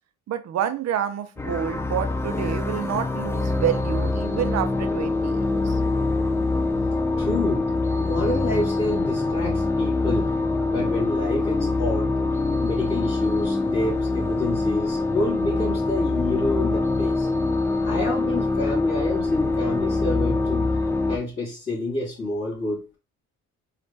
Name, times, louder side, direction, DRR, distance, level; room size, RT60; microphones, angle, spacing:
voice 1, 0.3-5.8, right 9 dB, 60° right, 10 dB, 0.6 m, -28 dB
sound 1, 1.4-21.2, left 3 dB, 10° left, 0.4 m, -24 dB
voice 2, 7.2-7.7 8.0-10.3 10.7-12.2 12.6-17.3 17.8-20.7 21.1-23.0, left 2 dB, 45° left, -7 dB, 2.3 m, -28 dB
4.1 x 2.4 x 3.3 m, 0.31 s
cardioid pair, 90°, 30 cm